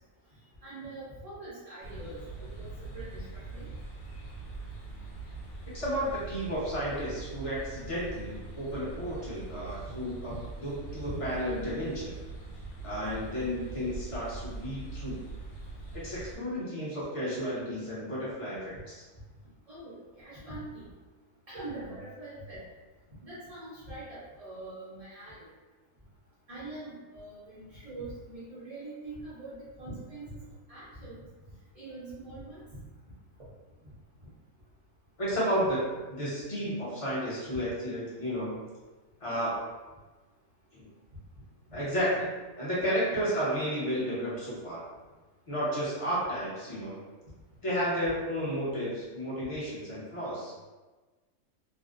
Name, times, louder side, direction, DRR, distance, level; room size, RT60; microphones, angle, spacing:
voice 1, 0.6-2.7 2.9-3.3 3.5-3.8 11.0-11.2 19.7-20.8 21.5-22.6 23.2-25.5 26.5-30.4 30.7-31.2 31.8-32.8 35.3-35.4 37.5-37.6, right 2 dB, 65° right, -11 dB, 0.3 m, -43 dB
sound 1, 1.8-16.4, right 3 dB, 60° left, 0.8 m, -42 dB
voice 2, 5.7-10.3 10.6-12.1 12.8-15.2 16.0-18.9 35.2-35.8 36.1-38.6 39.2-39.5 40.7-40.9 41.7-42.3 42.6-44.8 45.5-47.0 47.6-50.5, equal, 35° left, -8 dB, 0.6 m, -32 dB
2.5 x 2.0 x 2.4 m, 1.2 s
omnidirectional pair, 1.5 m